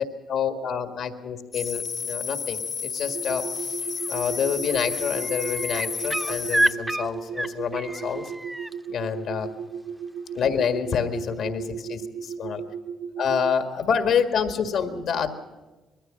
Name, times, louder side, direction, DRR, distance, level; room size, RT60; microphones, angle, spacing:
voice 1, 0.0-3.4 4.1-8.3 8.9-9.5 10.3-12.6 13.2-15.3, left 7 dB, 75° left, 7 dB, 1.8 m, -27 dB
sound 1, 1.5-6.7, left 6 dB, 50° left, 0.6 m, -31 dB
sound 2, 3.1-13.5, right 6 dB, 80° right, 0.7 m, -36 dB
sound 3, 4.0-4.4 4.7-8.7 10.4-10.5, right 1 dB, 5° right, 0.6 m, -29 dB
21.0 x 14.5 x 8.9 m, 1.2 s
cardioid pair, 90°, 0 cm